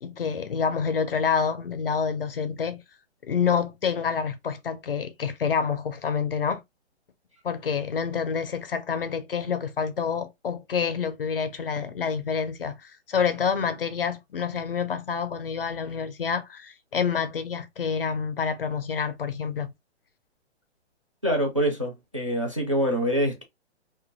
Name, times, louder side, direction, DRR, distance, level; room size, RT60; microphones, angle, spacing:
voice 1, 0.0-2.8 3.2-6.6 7.4-19.7, left 6 dB, 55° left, 0.4 m, -28 dB
voice 2, 21.2-23.4, equal, 30° right, 0.4 m, -25 dB
2.2 x 2.1 x 2.8 m
hypercardioid pair, 180°, 35 cm